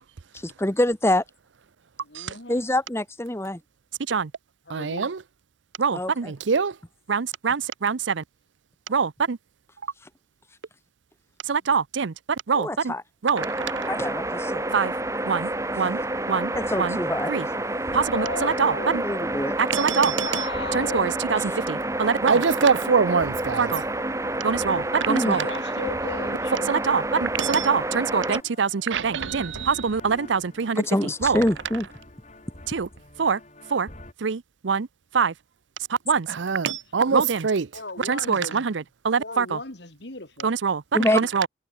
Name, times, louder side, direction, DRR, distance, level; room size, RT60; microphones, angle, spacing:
voice 1, 0.4-1.2 2.5-3.6 5.9-6.3 12.5-13.0 13.9-14.6 16.5-17.3 19.0-19.5 25.1-25.4 30.8-31.9 40.9-41.2, left 1 dB, 15° left, 1.1 m, -25 dB
voice 2, 2.0-2.6 4.7-5.1 18.1-19.3 20.2-21.2 25.3-26.8 37.0-37.2 37.7-38.7 39.2-40.5 40.9-41.2, left 2 dB, 65° left, 3.8 m, -36 dB
voice 3, 4.7-5.2 5.8-6.8 7.1-8.2 8.9-9.4 11.4-12.9 13.2-13.9 14.7-14.9 15.3-15.5 15.8-16.0 16.3-16.5 16.8-17.0 17.3-17.5 17.9-19.0 19.6-20.4 20.7-21.4 21.7-23.8 24.4-25.4 26.7-31.4 32.7-32.9 33.2-33.4 33.7-33.9 34.2-34.9 35.1-35.3 35.9-37.7 38.0-39.6 40.4-40.8 41.1-41.5, right 5 dB, 80° right, 0.6 m, -24 dB
sound 1, 13.4-28.4, right 1 dB, 15° right, 2.5 m, -29 dB
sound 2, 14.7-34.1, left 1 dB, 35° left, 3.4 m, -47 dB
head